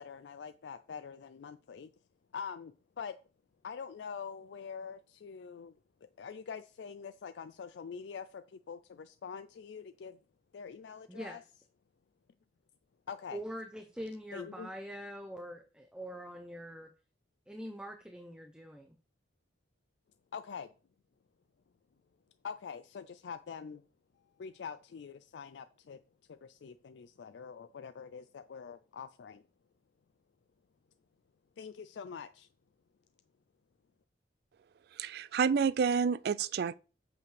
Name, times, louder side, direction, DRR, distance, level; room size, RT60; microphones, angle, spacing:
voice 1, 0.0-1.9 2.3-3.2 3.6-5.8 6.2-10.2 10.5-11.4 13.1-13.4 14.3-14.7 20.3-20.7 22.4-23.8 24.4-26.0 26.3-29.4 31.6-32.5, left 6 dB, 75° left, 0.4 m, -44 dB
voice 2, 11.1-11.4 13.3-16.9 17.5-19.0, equal, 5° right, 0.7 m, -44 dB
voice 3, 35.0-36.7, right 6 dB, 60° right, 0.3 m, -29 dB
8.0 x 6.8 x 3.3 m
head